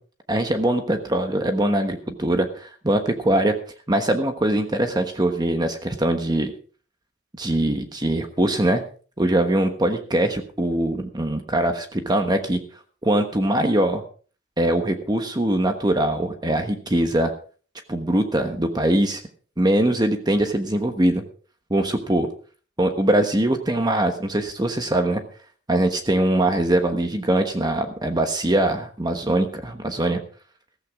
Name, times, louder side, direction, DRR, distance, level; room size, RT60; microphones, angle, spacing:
voice 1, 0.3-3.5 3.9-6.5 7.4-8.8 9.2-12.6 13.0-14.0 14.6-17.3 17.9-19.2 19.6-21.2 21.7-22.3 22.8-25.2 25.7-30.2, right 1 dB, 20° right, 6 dB, 1.2 m, -22 dB
15.0 x 14.5 x 3.6 m, 0.40 s
head